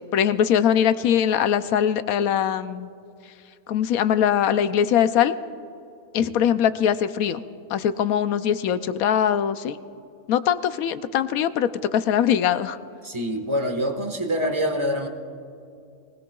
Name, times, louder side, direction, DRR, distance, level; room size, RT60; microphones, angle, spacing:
voice 1, 0.1-2.9 3.7-5.3 6.1-7.4 7.7-9.8 10.3-12.8, left 9 dB, 75° left, 12 dB, 1.0 m, -22 dB
voice 2, 13.0-15.1, equal, 20° right, 3 dB, 1.3 m, -25 dB
23.5 x 19.0 x 2.3 m, 2.6 s
omnidirectional pair, 1.6 m